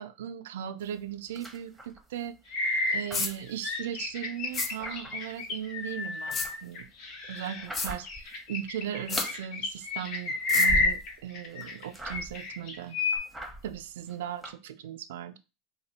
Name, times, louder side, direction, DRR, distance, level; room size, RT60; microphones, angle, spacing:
voice 1, 0.0-2.6 2.9-6.9 7.3-13.0 13.6-15.4, right 10 dB, 80° right, 0.4 m, -38 dB
sound 1, 0.8-2.4 2.6-4.0 4.4-5.5 5.8-8.4 8.6-9.5 9.8-11.2 11.5-12.5 12.9-14.5, right 1 dB, 5° right, 0.9 m, -41 dB
sound 2, 2.5-7.7 8.0-11.8 12.1-13.2, left 2 dB, 60° left, 1.0 m, -30 dB
sound 3, 3.1-3.3 4.5-4.7 6.3-6.5 7.7-7.9 9.1-9.3 10.5-10.7, left 4 dB, 30° left, 0.6 m, -31 dB
2.9 x 2.3 x 4.1 m
hypercardioid pair, 100°, 0 cm